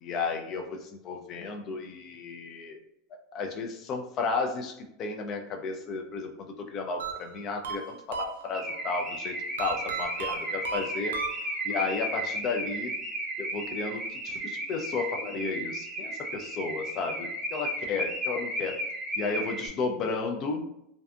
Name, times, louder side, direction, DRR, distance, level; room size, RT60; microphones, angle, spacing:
voice 1, 0.0-2.8 3.3-11.2 11.6-12.9 13.4-18.8 19.2-20.7, left 4 dB, 40° left, 4 dB, 0.4 m, -33 dB
sound 1, 7.0-8.8 9.6-11.8, right 7 dB, 90° right, 0.3 m, -36 dB
Car / Alarm, 8.5-19.7, right 1 dB, 15° right, 0.6 m, -34 dB
2.5 x 2.4 x 2.2 m, 0.77 s
supercardioid pair, 115°, 0 cm